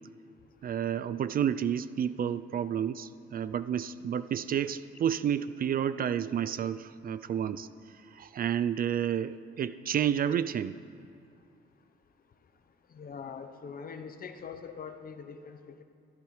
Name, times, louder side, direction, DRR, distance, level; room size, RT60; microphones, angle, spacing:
voice 1, 0.6-7.7 8.1-10.7, right 9 dB, 45° right, 14 dB, 0.4 m, -30 dB
voice 2, 12.9-15.8, left 6 dB, 45° left, 8 dB, 0.8 m, -43 dB
15.0 x 13.5 x 3.2 m, 2.3 s
cardioid pair, 90°, 20 cm